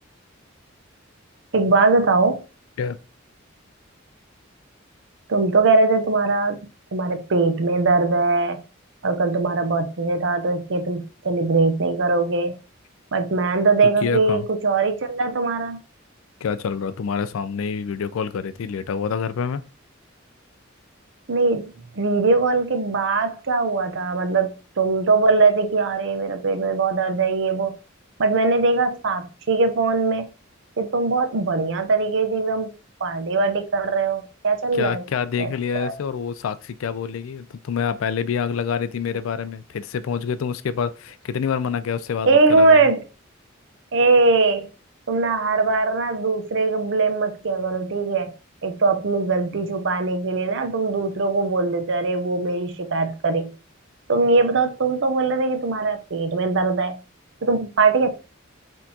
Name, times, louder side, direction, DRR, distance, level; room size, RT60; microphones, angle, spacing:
voice 1, 1.5-2.4 5.3-6.6 6.9-8.6 9.0-12.6 13.1-15.8 21.3-27.8 28.2-30.3 30.8-32.7 33.0-35.0 35.4-35.5 35.8-35.9 42.3-43.0 43.9-44.7 45.1-48.3 48.6-53.5 54.1-57.0 57.4-58.1, right 3 dB, 65° right, 0.7 m, -21 dB
voice 2, 14.0-14.5 16.4-19.6 34.7-42.9, left 6 dB, 80° left, 0.4 m, -27 dB
4.3 x 3.7 x 2.8 m
head